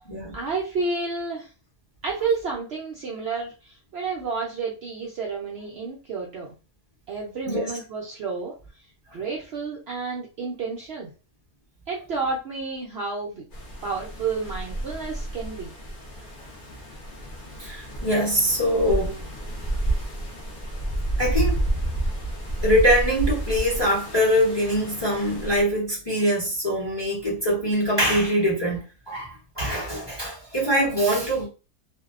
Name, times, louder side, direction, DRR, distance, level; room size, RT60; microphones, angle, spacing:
voice 1, 0.3-1.5 2.0-6.5 7.1-8.5 9.1-11.1 11.9-13.4 13.8-15.7, right 4 dB, 90° right, 0.5 m, -30 dB
sound 1, 13.5-25.6, right 2 dB, 80° left, 0.4 m, -30 dB
voice 2, 17.6-19.1 21.2-21.6 22.6-31.5, equal, 25° left, 0.6 m, -23 dB
2.6 x 2.1 x 2.3 m
omnidirectional pair, 1.6 m